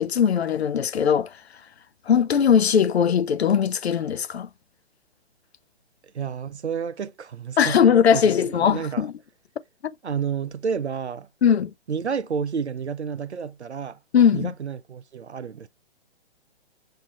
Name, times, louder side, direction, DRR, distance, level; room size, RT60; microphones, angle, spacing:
voice 1, 0.0-1.4 2.1-4.5 7.6-9.1 11.4-11.7 14.1-14.5, left 7 dB, 70° left, 0.6 m, -20 dB
voice 2, 6.1-7.8 8.1-9.1 10.0-11.3 11.9-14.0 14.3-15.7, right 6 dB, 80° right, 0.7 m, -30 dB
7.5 x 2.8 x 2.3 m
figure-of-eight pair, 130°, 33 cm